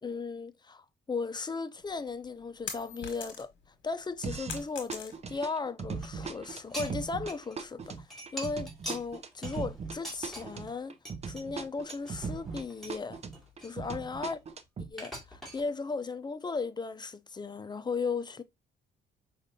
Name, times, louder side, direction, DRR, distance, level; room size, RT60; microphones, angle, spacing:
voice 1, 0.0-3.5 3.8-10.9 11.2-13.2 13.6-14.4 14.8-18.4, left 4 dB, 20° left, 0.5 m, -36 dB
sound 1, 1.9-3.7 4.0-5.5, left 6 dB, 70° left, 1.5 m, -42 dB
sound 2, 4.2-4.6 4.9-12.6 12.9-14.9, right 5 dB, 35° right, 0.6 m, -39 dB
sound 3, 5.9-7.6 7.8-10.7 11.1-11.4 11.9-13.0 13.3-14.5 15.0-15.6, equal, ahead, 2.3 m, -44 dB
5.1 x 3.3 x 2.7 m
cardioid pair, 90°, 20 cm